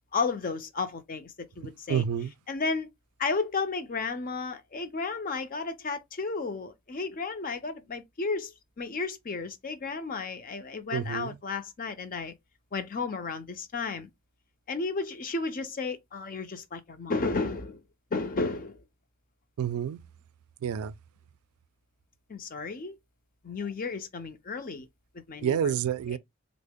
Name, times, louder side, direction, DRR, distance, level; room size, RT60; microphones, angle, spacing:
voice 1, 0.1-2.0 2.5-2.9 3.2-12.3 12.7-14.1 14.7-17.8 18.1-18.8 22.3-23.0 23.4-24.9 25.3-25.7 26.1-26.2, left 4 dB, 40° left, 0.5 m, -33 dB
voice 2, 1.9-2.3 10.9-11.4 19.6-20.0 20.6-20.9 25.4-26.2, right 8 dB, 85° right, 0.3 m, -28 dB
3.6 x 2.0 x 3.4 m
head